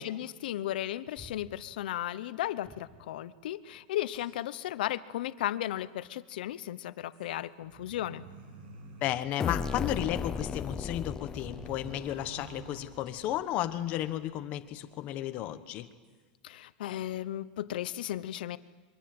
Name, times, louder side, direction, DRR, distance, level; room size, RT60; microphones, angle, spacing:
voice 1, 0.0-8.2 16.4-18.6, left 13 dB, 70° left, 15 dB, 0.9 m, -35 dB
sound 1, 1.2-1.5 2.6-2.9 4.1-4.6 5.6-5.7 7.1-7.3 10.1-10.3 11.5-11.8 13.0-13.4 14.5-14.6 16.0-16.2, left 1 dB, 5° right, 5.8 m, -55 dB
sound 2, 7.6-10.2 10.7-13.5, right 4 dB, 90° right, 7.7 m, -50 dB
voice 2, 9.0-15.9, left 13 dB, 30° left, 10 dB, 1.1 m, -33 dB
sound 3, 9.4-13.0, left 6 dB, 10° left, 0.7 m, -36 dB
27.5 x 23.5 x 7.8 m, 1.4 s
supercardioid pair, 180°, 5 cm